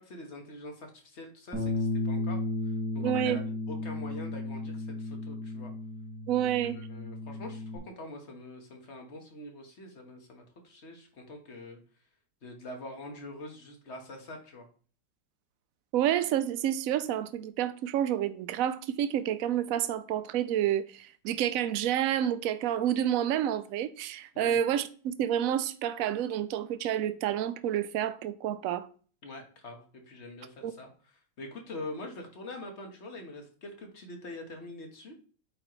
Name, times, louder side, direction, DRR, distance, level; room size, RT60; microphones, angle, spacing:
voice 1, 0.0-2.4 2.7-3.4 3.7-5.7 6.3-11.8 12.4-14.6 24.3-24.6 29.2-35.1, left 2 dB, 40° left, 1.6 m, -44 dB
Bass guitar, 1.5-7.8, left 2 dB, ahead, 2.6 m, -34 dB
voice 2, 3.0-3.4 6.3-6.8 15.9-28.9 30.6-30.7, right 10 dB, 70° right, 0.8 m, -29 dB
8.5 x 5.2 x 3.1 m
omnidirectional pair, 1.9 m